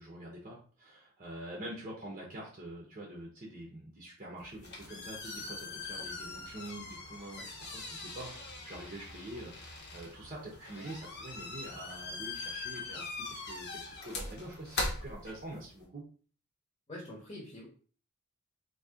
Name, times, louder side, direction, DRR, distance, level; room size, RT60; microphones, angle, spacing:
voice 1, 0.0-16.1, right 1 dB, 35° right, -2 dB, 0.8 m, -46 dB
sound 1, 4.4-15.8, left 3 dB, 50° left, 0.9 m, -41 dB
voice 2, 16.9-17.7, left 1 dB, 25° left, -4 dB, 1.0 m, -45 dB
2.8 x 2.8 x 3.7 m, 0.41 s
head